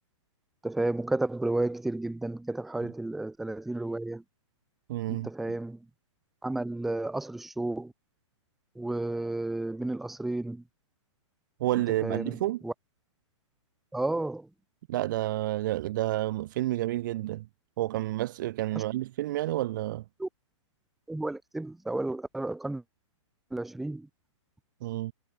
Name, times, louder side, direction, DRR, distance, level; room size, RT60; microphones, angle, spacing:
voice 1, 0.6-4.2 5.1-5.8 6.4-7.9 8.8-10.6 12.0-12.4 12.6-12.7 13.9-14.5 18.7-18.8 20.2-20.3 21.1-22.8 23.5-24.1, right 2 dB, ahead, 0.3 m, -32 dB
voice 2, 4.9-5.3 11.6-12.6 14.9-17.4 17.8-20.0 24.8-25.1, right 15 dB, 40° right, 1.5 m, -30 dB
hypercardioid pair, 170°, 16 cm